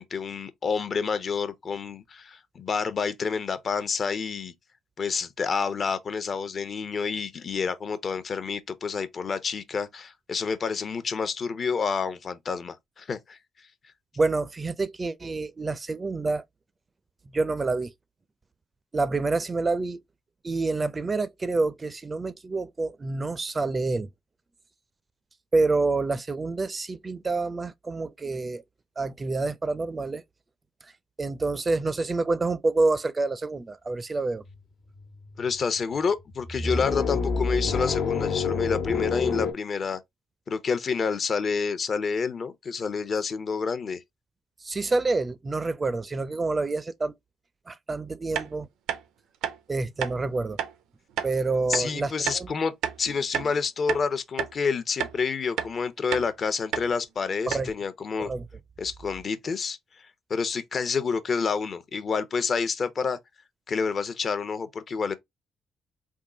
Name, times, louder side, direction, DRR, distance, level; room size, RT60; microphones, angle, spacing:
voice 1, 0.0-4.5 5.0-13.4 35.4-40.0 40.5-44.0 51.7-52.7 53.0-58.3 58.8-59.8 60.3-63.2 63.7-65.1, left 5 dB, 45° left, 0.7 m, -28 dB
voice 2, 14.2-16.4 17.3-17.9 18.9-20.0 20.4-24.1 25.5-28.6 29.0-30.2 30.8-30.9 31.2-34.4 44.6-47.1 47.7-48.7 49.7-50.6 51.2-52.5 57.5-57.7 58.2-58.5, right 3 dB, 30° right, 0.5 m, -27 dB
sound 1, 34.5-34.6 35.0-35.6 36.3-39.5, left 5 dB, 65° left, 1.1 m, -28 dB
sound 2, 48.3-48.5 48.9-49.0 49.4-49.6 50.0-50.1 50.6-50.7 51.2-51.3 51.7-51.9 52.3-52.4 52.8-53.5 53.9-54.0 54.4-54.5 55.0-55.2 55.6-55.7 56.1-56.3 56.7-56.9 57.2-57.3 57.5-57.7, right 9 dB, 85° right, 0.6 m, -30 dB
3.6 x 2.2 x 3.7 m
cardioid pair, 75°, 0 cm